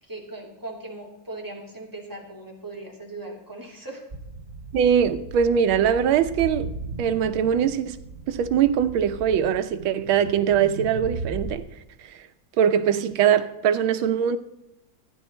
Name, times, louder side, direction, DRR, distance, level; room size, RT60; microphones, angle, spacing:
voice 1, 0.0-4.0, right 2 dB, 10° right, 2.6 m, -39 dB
sound 1, 4.1-11.6, right 3 dB, 40° right, 0.9 m, -37 dB
voice 2, 4.7-6.7 7.0-8.0 8.3-11.6 12.0-12.2 12.6-14.4, right 8 dB, 85° right, 1.6 m, -22 dB
14.0 x 10.0 x 4.3 m
omnidirectional pair, 2.2 m